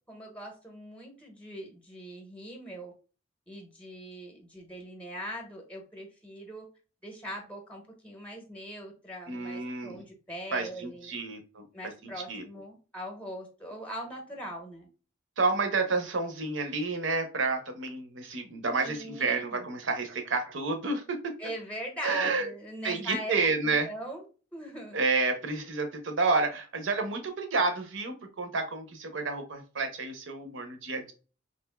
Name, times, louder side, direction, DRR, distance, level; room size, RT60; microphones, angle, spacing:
voice 1, 0.1-2.9 3.5-6.6 7.0-11.2 11.7-14.9 18.8-19.7 21.4-23.3 23.6-24.2 24.5-25.0, equal, 5° left, 1 dB, 0.8 m, -41 dB
voice 2, 9.3-10.0 10.5-11.6 12.3-12.4 15.4-21.3 22.0-22.5 22.8-23.9 24.9-31.1, right 3 dB, 70° right, 7 dB, 0.7 m, -30 dB
3.2 x 2.5 x 2.2 m, 0.35 s
head